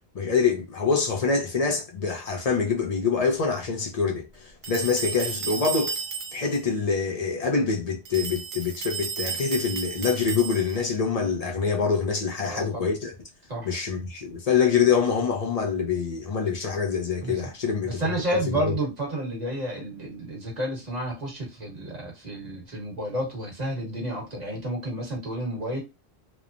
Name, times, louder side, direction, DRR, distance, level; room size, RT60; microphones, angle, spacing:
voice 1, 0.1-4.3 4.7-5.9 6.3-13.1 13.6-18.0 18.3-18.7, left 5 dB, 45° left, 0.5 m, -25 dB
sound 1, 4.6-6.6 8.1-11.0, right 6 dB, 85° right, 0.9 m, -33 dB
voice 2, 12.5-12.9 13.5-13.7 17.2-17.3 17.8-25.8, right 1 dB, 40° right, 1.3 m, -31 dB
3.0 x 2.1 x 2.4 m
omnidirectional pair, 1.1 m